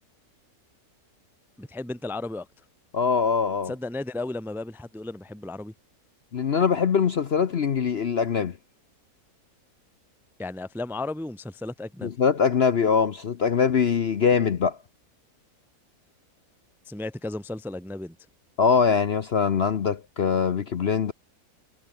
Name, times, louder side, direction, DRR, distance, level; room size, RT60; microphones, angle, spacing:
voice 1, 1.6-2.5 3.6-5.7 10.4-12.1 16.9-18.2, left 2 dB, ahead, 0.7 m, -34 dB
voice 2, 2.9-3.7 6.3-8.5 12.0-14.8 18.6-21.1, left 6 dB, 50° left, 0.9 m, -22 dB
omnidirectional pair, 1.7 m